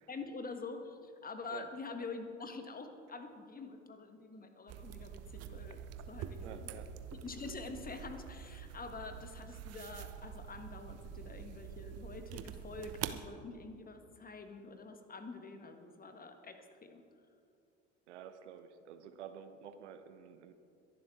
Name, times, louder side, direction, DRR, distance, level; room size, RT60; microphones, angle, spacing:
voice 1, 0.1-5.8 6.1-6.7 7.2-17.0, left 4 dB, 25° left, 6 dB, 1.5 m, -46 dB
sound 1, 4.7-13.2, right 9 dB, 45° right, 0.8 m, -46 dB
voice 2, 6.4-6.9 18.1-20.5, right 9 dB, 70° right, 10 dB, 0.9 m, -50 dB
22.5 x 11.5 x 3.7 m, 2.5 s
figure-of-eight pair, 60°, 36 cm